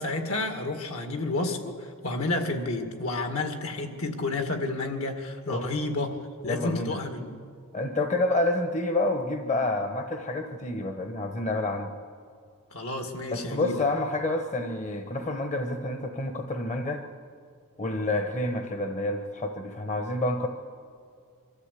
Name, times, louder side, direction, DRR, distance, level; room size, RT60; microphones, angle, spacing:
voice 1, 0.0-6.2 6.4-7.3 12.7-13.8, left 2 dB, 70° left, 5 dB, 2.2 m, -30 dB
voice 2, 6.4-7.0 7.7-11.9 13.3-17.0 17.8-20.5, left 2 dB, 35° left, 5 dB, 1.0 m, -28 dB
24.5 x 13.5 x 8.4 m, 2.3 s
head